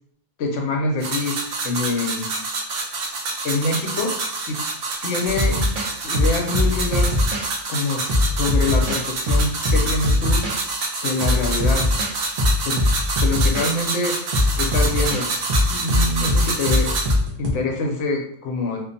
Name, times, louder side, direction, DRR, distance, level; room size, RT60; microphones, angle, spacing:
voice 1, 0.4-1.3 1.6-2.3 3.4-4.1 4.5-4.6 5.0-5.6 6.0-7.2 7.7-10.4 11.0-11.9 12.6-12.8 13.2-14.1 14.6-15.3 15.7-16.9 17.4-18.8, left 2 dB, 75° left, 1 dB, 1.0 m, -25 dB
sound 1, 1.0-17.1, right 3 dB, 60° right, 0.7 m, -27 dB
sound 2, 5.3-7.5 8.1-10.6 11.2-12.1 12.4-13.7 14.3-17.5, left 1 dB, 90° right, 0.3 m, -21 dB
2.5 x 2.1 x 2.6 m, 0.65 s
omnidirectional pair, 1.3 m